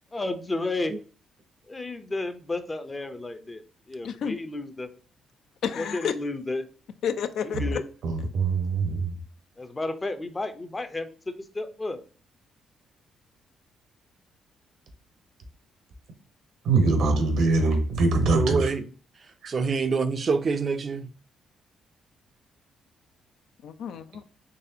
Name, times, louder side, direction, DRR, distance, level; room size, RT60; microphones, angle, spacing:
voice 1, 0.1-0.9 1.7-4.9 5.8-6.6 7.4-7.8 9.6-12.0, left 2 dB, 20° left, 0.6 m, -32 dB
voice 2, 4.0-4.4 5.6-6.1 7.0-7.8 23.6-24.2, left 7 dB, 70° left, 0.4 m, -30 dB
voice 3, 8.0-9.2 16.6-18.7 19.4-19.5, right 3 dB, 75° right, 1.0 m, -23 dB
voice 4, 18.0-18.8 19.2-21.1, right 4 dB, 40° right, 0.5 m, -27 dB
4.0 x 3.3 x 2.7 m
cardioid pair, 90°, 0 cm